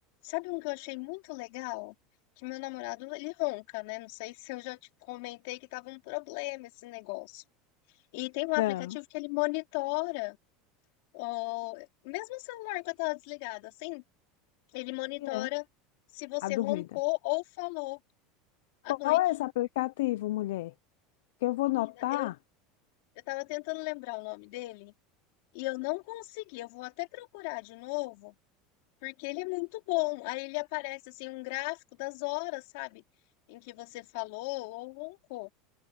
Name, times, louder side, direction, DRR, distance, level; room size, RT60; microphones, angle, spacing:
voice 1, 0.2-1.9 2.4-4.8 5.1-7.4 8.1-10.4 11.1-14.0 14.7-15.6 16.1-18.0 18.8-19.2 22.1-22.3 23.3-24.9 25.5-28.3 29.0-33.0 33.5-35.5, left 26 dB, 65° left, 3.8 m, -35 dB
voice 2, 8.6-9.0 15.2-15.5 16.4-16.8 18.9-20.7 21.4-22.3, left 17 dB, 90° left, 0.5 m, -29 dB
supercardioid pair, 165°, 0 cm